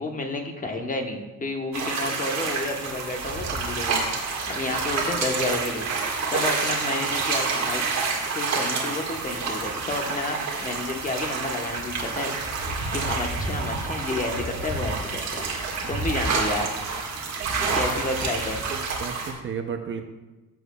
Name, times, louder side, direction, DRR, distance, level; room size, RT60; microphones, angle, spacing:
voice 1, 0.0-4.0 4.4-5.8 6.3-7.8 8.3-12.3 12.9-15.4 15.9-16.7 17.7-18.6, left 2 dB, 25° left, 3 dB, 1.0 m, -30 dB
sound 1, 1.7-19.3, right 4 dB, 55° right, 1.7 m, -28 dB
voice 2, 18.7-20.0, right 7 dB, 35° right, 6 dB, 0.6 m, -33 dB
15.0 x 6.9 x 2.3 m, 1.2 s
cardioid pair, 155°, 33 cm